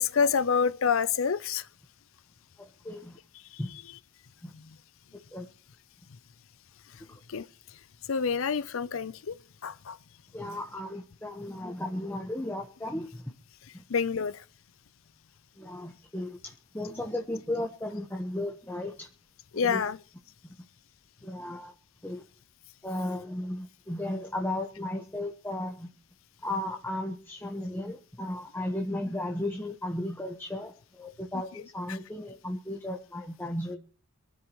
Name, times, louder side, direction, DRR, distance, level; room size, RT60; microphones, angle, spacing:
voice 1, 0.0-1.7 3.5-4.0 4.5-4.7 7.3-7.5 8.1-9.4 9.6-10.0 13.9-14.4 19.5-20.0 31.9-32.0, left 6 dB, 65° left, 0.6 m, -28 dB
voice 2, 2.6-3.2 3.6-3.7 4.4-4.5 5.3-5.5 7.1-7.2 10.3-13.1 13.7-13.8 15.6-19.1 19.5-19.8 21.2-21.7 22.0-22.2 22.8-25.9 26.4-33.8, left 1 dB, 10° left, 1.2 m, -35 dB
23.0 x 13.0 x 3.1 m
head